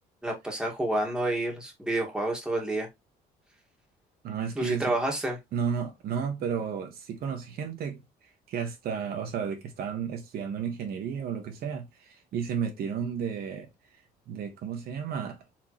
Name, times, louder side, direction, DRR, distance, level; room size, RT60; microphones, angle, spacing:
voice 1, 0.2-2.9 4.6-5.4, right 1 dB, 5° right, 1.7 m, -29 dB
voice 2, 4.2-4.9 5.5-8.0 8.5-13.7 14.3-15.4, right 7 dB, 65° right, 1.2 m, -32 dB
4.5 x 3.5 x 3.0 m
cardioid pair, 110°, 17 cm